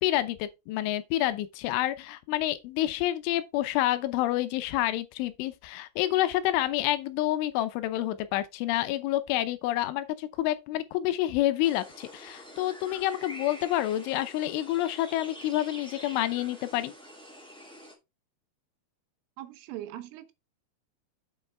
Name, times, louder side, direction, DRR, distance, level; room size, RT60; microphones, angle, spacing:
voice 1, 0.0-16.9, left 14 dB, 80° left, 3.1 m, -28 dB
sound 1, 11.6-17.9, equal, ahead, 1.3 m, -47 dB
voice 2, 19.4-20.3, right 13 dB, 85° right, 3.5 m, -40 dB
8.1 x 7.8 x 3.4 m
omnidirectional pair, 5.7 m